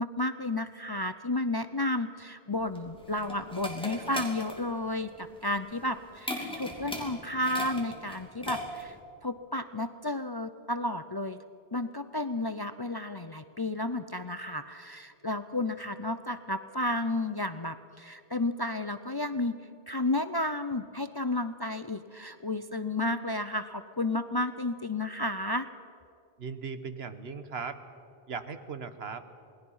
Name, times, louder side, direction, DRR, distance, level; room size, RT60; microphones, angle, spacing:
voice 1, 0.0-9.0 9.2-11.4 11.7-19.6 19.9-25.7, left 2 dB, 30° left, 10 dB, 0.5 m, -32 dB
sound 1, 2.5-9.0, equal, 5° left, 2.7 m, -39 dB
voice 2, 26.4-27.8 28.3-29.4, right 5 dB, 75° right, 10 dB, 1.4 m, -38 dB
27.5 x 19.5 x 5.6 m, 2.6 s
omnidirectional pair, 1.1 m